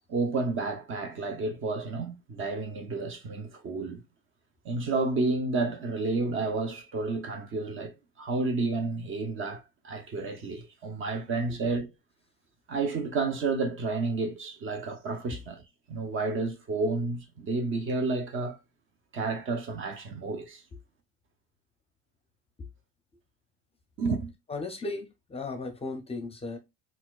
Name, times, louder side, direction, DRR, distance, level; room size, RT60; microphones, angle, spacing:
voice 1, 0.1-4.0 4.6-11.9 12.7-15.6 15.9-18.6 19.1-20.6 24.0-24.3, right 3 dB, 40° right, 0.7 m, -31 dB
voice 2, 24.5-26.6, left 3 dB, 20° left, 0.6 m, -36 dB
4.1 x 2.4 x 2.3 m
cardioid pair, 135°, 32 cm